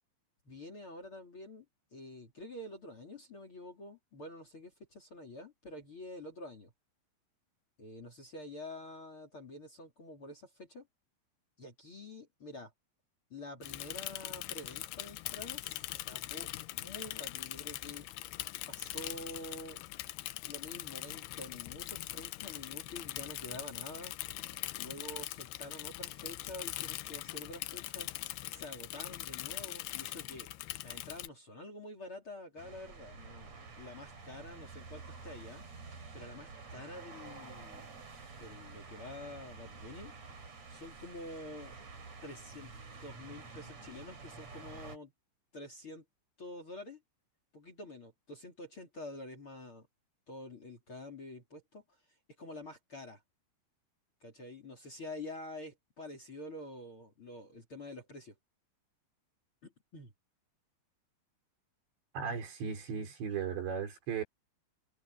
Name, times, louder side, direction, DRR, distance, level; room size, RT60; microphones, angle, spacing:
voice 1, 0.4-1.6 1.9-6.7 7.8-10.9 11.6-12.7 13.3-18.0 18.7-19.8 20.5-24.2 24.8-28.1 28.5-30.5 30.8-35.6 36.1-37.9 38.4-40.1 40.7-41.7 42.2-42.7 43.0-45.1 45.5-46.0 46.4-47.0 47.5-49.9 50.3-51.8 52.4-53.2 54.2-58.3 59.6-60.1, left 1 dB, 30° left, 3.4 m, -47 dB
Bicycle / Mechanisms, 13.6-31.3, left 17 dB, 80° left, 2.3 m, -42 dB
sound 1, 32.6-45.0, right 4 dB, 35° right, 5.1 m, -50 dB
voice 2, 62.1-64.2, right 6 dB, 65° right, 6.7 m, -36 dB
omnidirectional pair, 5.5 m